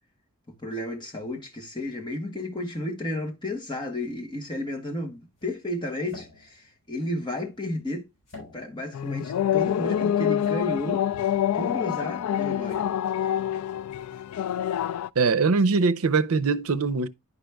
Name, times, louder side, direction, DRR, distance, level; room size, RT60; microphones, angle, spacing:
voice 1, 0.6-8.1 8.5-11.0 11.5-12.9, left 1 dB, 20° left, 1.4 m, -32 dB
sound 1, 5.1-14.2, left 3 dB, 55° left, 5.2 m, -51 dB
sound 2, 8.9-15.1, left 10 dB, 90° left, 0.3 m, -26 dB
voice 2, 15.2-17.1, right 4 dB, 75° right, 0.6 m, -22 dB
11.0 x 5.1 x 2.2 m
head